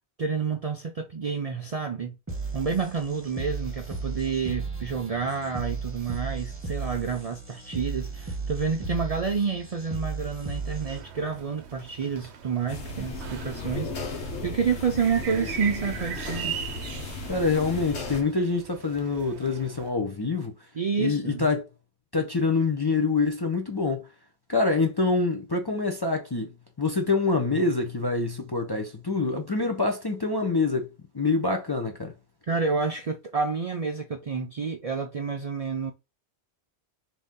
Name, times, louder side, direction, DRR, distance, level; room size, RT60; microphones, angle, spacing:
voice 1, 0.2-2.2 2.5-16.6 20.8-21.5 32.5-35.9, right 5 dB, 50° right, 0.4 m, -29 dB
sound 1, 2.3-11.3, right 4 dB, 10° right, 1.0 m, -35 dB
sound 2, 10.5-19.9, right 8 dB, 85° right, 0.9 m, -40 dB
sound 3, 12.7-18.2, left 2 dB, 90° left, 1.3 m, -35 dB
voice 2, 17.3-20.5 21.0-21.6 22.1-24.1 24.5-32.1, left 3 dB, 30° left, 0.5 m, -26 dB
3.9 x 2.8 x 3.6 m
omnidirectional pair, 1.1 m